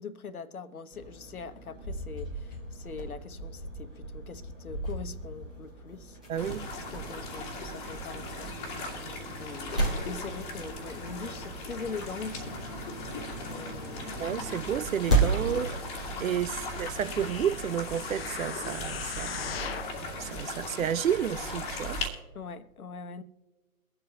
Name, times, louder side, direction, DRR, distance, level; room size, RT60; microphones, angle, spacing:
voice 1, 0.0-6.2 6.9-8.6 9.4-13.1 13.4-14.3 16.2-16.4 20.3-20.5 22.3-23.2, left 5 dB, 75° left, 1.1 m, -42 dB
sound 1, 0.9-19.6, right 2 dB, 5° right, 0.5 m, -36 dB
voice 2, 6.3-6.7 14.2-15.8 16.2-19.6 20.2-22.1, right 9 dB, 65° right, 0.5 m, -31 dB
sound 2, 6.4-22.1, left 1 dB, 15° left, 1.9 m, -38 dB
sound 3, 16.4-20.0 20.6-20.7, left 7 dB, 45° left, 0.7 m, -40 dB
24.0 x 7.9 x 2.7 m
figure-of-eight pair, 140°, 43 cm